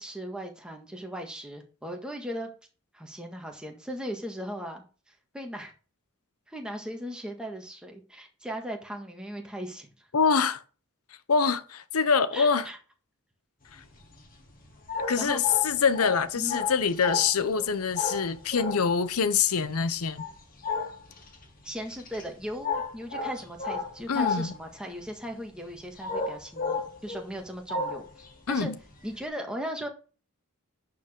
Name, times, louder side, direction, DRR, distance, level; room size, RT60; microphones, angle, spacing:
voice 1, 0.0-2.5 2.9-4.8 5.3-5.7 6.5-10.1 12.3-12.8 15.2-15.4 16.3-16.6 21.6-28.7 29.0-29.9, equal, 5° right, 1.7 m, -38 dB
voice 2, 10.1-10.6 11.3-12.6 13.7-13.8 15.1-20.2 24.1-24.5 28.5-28.8, left 6 dB, 85° left, 0.8 m, -25 dB
sound 1, 13.7-25.3 25.6-27.4 27.7-28.6 28.8-29.2, left 4 dB, 40° left, 2.2 m, -34 dB
11.0 x 5.0 x 3.7 m
head